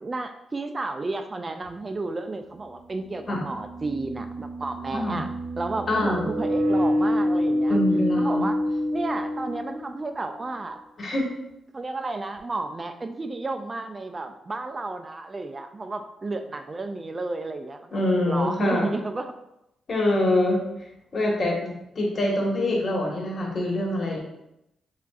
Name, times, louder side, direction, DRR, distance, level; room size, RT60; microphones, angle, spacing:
voice 1, 0.0-5.3 5.6-7.8 8.2-8.6 8.9-10.8 11.7-19.3, right 3 dB, 30° right, 7 dB, 0.3 m, -32 dB
sound 1, 1.7-1.8 3.2-10.1, left 1 dB, 75° right, 0.9 m, -27 dB
voice 2, 5.9-6.2 7.7-8.5 11.0-11.3 17.9-18.9 19.9-20.6 21.1-24.2, left 1 dB, 50° left, -1 dB, 1.3 m, -25 dB
7.1 x 2.5 x 2.4 m, 0.84 s
cardioid pair, 85°, 0 cm